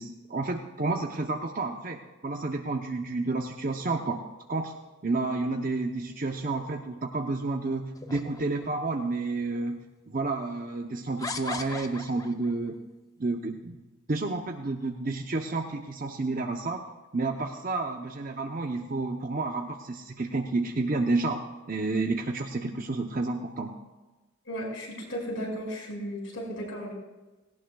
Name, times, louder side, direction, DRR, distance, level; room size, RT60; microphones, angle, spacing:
voice 1, 0.0-4.2 4.5-4.7 5.0-9.8 10.1-12.8 13.2-13.8 14.1-16.8 17.1-23.8, right 3 dB, 40° right, 3 dB, 0.7 m, -30 dB
sound 1, 8.0-8.9 9.7-9.8 11.2-12.5, left 3 dB, 15° left, 0.5 m, -38 dB
voice 2, 24.5-26.9, equal, 65° left, -1 dB, 5.3 m, -35 dB
18.0 x 17.0 x 2.3 m, 1.2 s
head